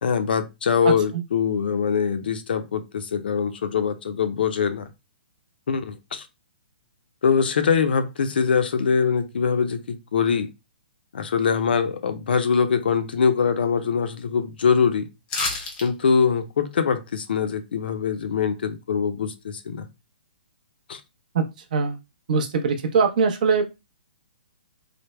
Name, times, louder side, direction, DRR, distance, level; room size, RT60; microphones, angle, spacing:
voice 1, 0.0-4.9 5.7-6.3 7.2-10.5 11.1-15.1 15.8-19.8 20.9-21.0, left 6 dB, 65° left, 0.5 m, -23 dB
voice 2, 0.8-1.2 21.3-22.0 22.3-23.9, right 5 dB, 45° right, 0.6 m, -23 dB
sound 1, 15.3-15.9 16.2-16.3, left 3 dB, 15° left, 0.6 m, -27 dB
3.3 x 2.1 x 3.1 m
hypercardioid pair, 165°, 6 cm